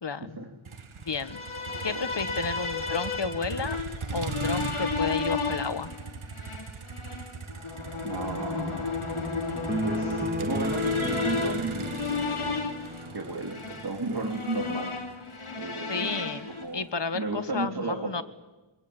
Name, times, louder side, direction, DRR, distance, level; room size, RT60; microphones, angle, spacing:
voice 1, 0.0-0.4 1.1-1.4 1.8-3.8 4.1-5.9 15.9-16.5 16.7-18.2, left 4 dB, 60° left, 13 dB, 1.5 m, -32 dB
Motor vehicle (road), 0.6-16.8, right 5 dB, 75° right, 1.6 m, -40 dB
sound 1, 1.1-16.6, left 4 dB, 80° left, 3.4 m, -33 dB
voice 2, 1.7-2.1 8.0-11.9 12.2-12.6 13.1-14.9 15.5-16.8 17.1-18.2, right 3 dB, 50° right, 3 dB, 3.4 m, -34 dB
sound 2, 9.7-13.2, equal, 20° right, 2.1 m, -33 dB
25.5 x 22.5 x 8.9 m, 1.1 s
wide cardioid pair, 50°, 49 cm